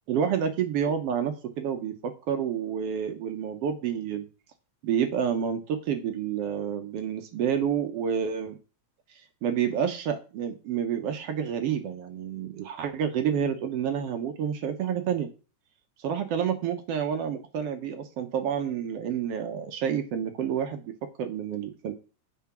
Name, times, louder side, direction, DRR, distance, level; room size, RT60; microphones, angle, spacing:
voice 1, 0.1-4.3 4.8-8.5 9.4-15.3 16.0-21.9, right 8 dB, 70° right, 7 dB, 1.5 m, -29 dB
7.4 x 5.0 x 5.8 m, 0.34 s
omnidirectional pair, 3.4 m